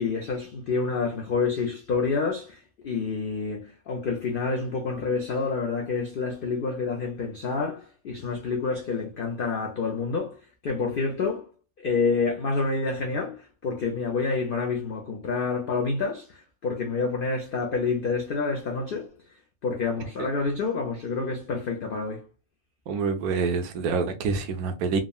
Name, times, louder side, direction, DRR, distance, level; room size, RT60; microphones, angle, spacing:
voice 1, 0.0-10.4 10.6-11.5 11.8-19.1 19.6-22.2, left 4 dB, 80° left, 0.5 m, -28 dB
voice 2, 22.9-25.0, right 5 dB, 90° right, 1.1 m, -27 dB
3.5 x 2.0 x 2.2 m
omnidirectional pair, 1.5 m